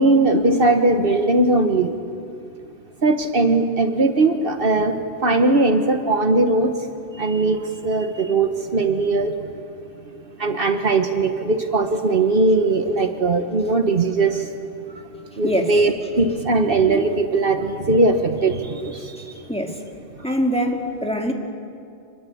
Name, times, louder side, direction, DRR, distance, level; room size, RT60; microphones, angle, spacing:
voice 1, 0.0-1.9 3.0-4.9 5.2-6.7 7.2-9.3 10.4-14.4 15.4-19.0, right 2 dB, 55° right, 7 dB, 1.4 m, -19 dB
voice 2, 15.4-15.7 19.2-19.3 19.5-19.8 20.2-21.3, equal, 5° left, 2 dB, 2.2 m, -23 dB
26.5 x 21.5 x 8.5 m, 2.6 s
omnidirectional pair, 1.1 m